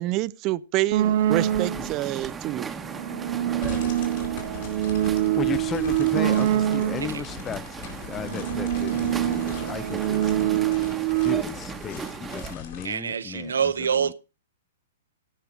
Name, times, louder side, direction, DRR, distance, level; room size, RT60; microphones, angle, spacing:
voice 1, 0.0-2.7, right 17 dB, 35° right, 0.5 m, -27 dB
sound 1, 0.9-2.0 2.8-7.3 8.0-11.4, right 12 dB, 60° right, 1.3 m, -25 dB
sound 2, 1.3-12.5, right 5 dB, 15° right, 1.1 m, -37 dB
sound 3, 3.6-12.9, left 7 dB, 55° left, 3.8 m, -40 dB
voice 2, 5.3-10.3 11.2-13.6 14.0-14.1, left 7 dB, 20° left, 0.6 m, -35 dB
voice 3, 12.8-14.1, right 7 dB, 80° right, 0.8 m, -26 dB
16.5 x 5.7 x 4.8 m
hypercardioid pair, 120°, 0 cm